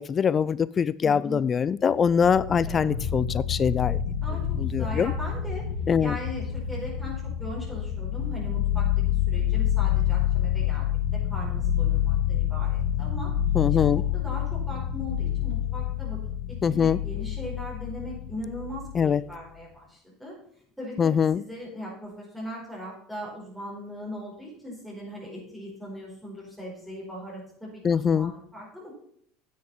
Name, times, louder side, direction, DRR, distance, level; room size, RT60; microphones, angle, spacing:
voice 1, 0.0-4.0 4.6-5.1 5.9-6.2 13.5-14.0 16.6-17.0 18.9-19.2 21.0-21.4 27.8-28.3, left 7 dB, 30° left, 19 dB, 0.4 m, -23 dB
voice 2, 1.0-1.4 2.6-3.0 4.2-4.4 4.8-5.6 6.0-8.9 9.3-10.8 11.1-13.3 13.7-16.2 16.7-20.3 20.8-29.0, equal, 5° right, -5 dB, 4.9 m, -39 dB
sound 1, 1.9-19.3, left 10 dB, 80° left, 1.8 m, -28 dB
9.6 x 7.8 x 5.5 m, 0.67 s
supercardioid pair, 100°, 0 cm